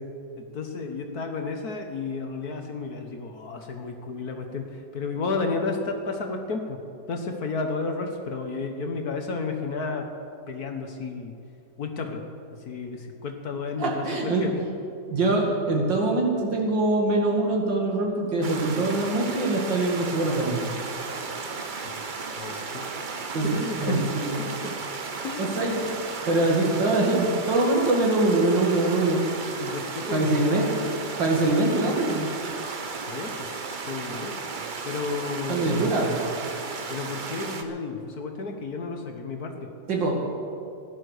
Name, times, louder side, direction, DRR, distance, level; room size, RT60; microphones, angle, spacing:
voice 1, 0.4-6.8 7.1-10.1 10.5-11.3 11.8-12.2 12.6-14.5 21.8-22.0 22.3-23.0 23.5-24.0 24.6-24.7 25.2-25.5 29.6-30.4 32.8-33.5 33.9-34.3 34.8-35.7 36.9-39.7, left 4 dB, 55° left, 4 dB, 1.6 m, -32 dB
voice 2, 13.8-14.5 15.1-20.6 23.3-24.5 25.4-25.7 26.3-29.3 30.1-30.8 31.2-32.3 35.5-36.2 39.9-40.2, right 2 dB, 70° right, 0 dB, 2.8 m, -23 dB
sound 1, 18.4-37.6, right 4 dB, 50° right, 0.5 m, -34 dB
15.5 x 11.0 x 6.5 m, 2.5 s
omnidirectional pair, 2.1 m